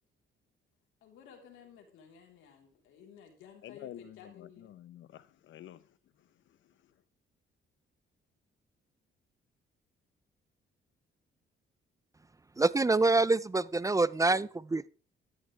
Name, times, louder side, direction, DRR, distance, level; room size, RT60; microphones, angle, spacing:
voice 1, 1.0-4.7, left 7 dB, 90° left, 3.9 m, -54 dB
voice 2, 3.6-5.8, left 12 dB, 75° left, 0.9 m, -48 dB
voice 3, 12.6-14.9, right 3 dB, 15° right, 0.5 m, -26 dB
13.0 x 12.5 x 3.4 m
cardioid pair, 90°, 20 cm